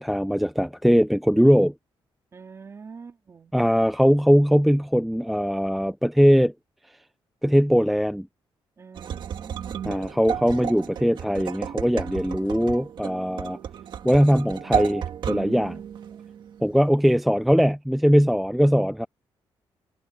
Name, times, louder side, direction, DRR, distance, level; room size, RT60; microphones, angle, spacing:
voice 1, 0.0-1.7 3.5-6.5 7.4-8.3 9.8-13.6 14.0-15.8 16.6-19.1, equal, ahead, 0.4 m, -20 dB
voice 2, 2.3-3.5 8.8-9.9 16.1-16.3, right 5 dB, 30° right, 3.0 m, -45 dB
sound 1, 9.0-16.9, right 8 dB, 60° right, 1.7 m, -33 dB
wide cardioid pair, 160°, 9 cm